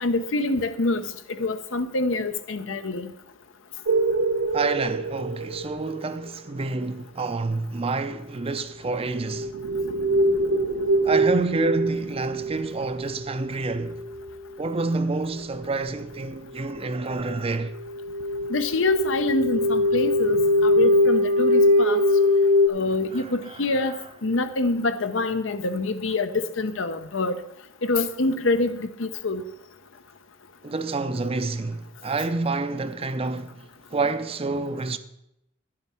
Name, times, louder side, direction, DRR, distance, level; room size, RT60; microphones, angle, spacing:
voice 1, 0.0-1.0 1.4-3.1 18.5-22.0 22.7-23.9 24.2-27.3 27.8-29.4, left 2 dB, 75° left, 0.8 m, -25 dB
sound 1, 3.9-6.3 9.1-14.7 15.5-15.6 16.0-16.1 16.8-16.9 17.0-17.2 17.5-22.7, left 1 dB, 85° right, 0.8 m, -23 dB
voice 2, 4.5-9.5 11.0-14.0 14.6-17.7 22.9-24.1 30.6-35.0, right 3 dB, 30° right, 0.5 m, -28 dB
10.5 x 7.7 x 5.6 m
head